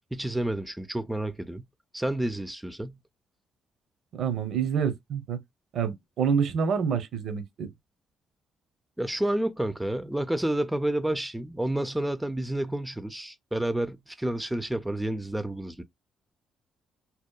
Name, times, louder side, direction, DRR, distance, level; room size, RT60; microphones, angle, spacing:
voice 1, 0.1-1.6 1.9-3.0 9.0-15.8, right 1 dB, 5° right, 0.3 m, -30 dB
voice 2, 4.1-5.4 5.7-7.7, right 6 dB, 70° right, 0.6 m, -27 dB
2.8 x 2.1 x 2.2 m
cardioid pair, 85°, 0 cm